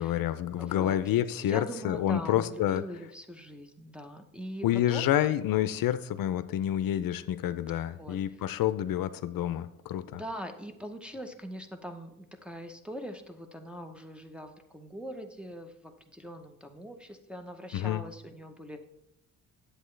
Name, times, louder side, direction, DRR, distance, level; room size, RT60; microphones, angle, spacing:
voice 1, 0.0-2.8 4.6-10.2 17.7-18.0, left 12 dB, 70° left, 0.5 m, -28 dB
voice 2, 0.6-1.0 1.4-5.1 8.0-8.2 10.1-18.8, equal, 5° right, 0.8 m, -42 dB
10.0 x 7.8 x 3.2 m
cardioid pair, 110°, 35 cm